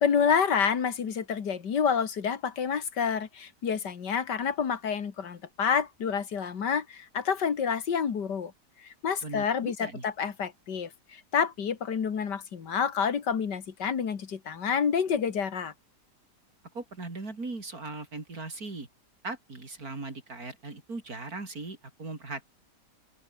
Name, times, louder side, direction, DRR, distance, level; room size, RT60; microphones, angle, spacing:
voice 1, 0.0-8.5 8.8-15.7, left 7 dB, 80° left, 2.4 m, -28 dB
voice 2, 9.2-10.0 16.7-18.9 19.2-22.5, right 3 dB, 60° right, 4.6 m, -39 dB
open air
omnidirectional pair, 1.8 m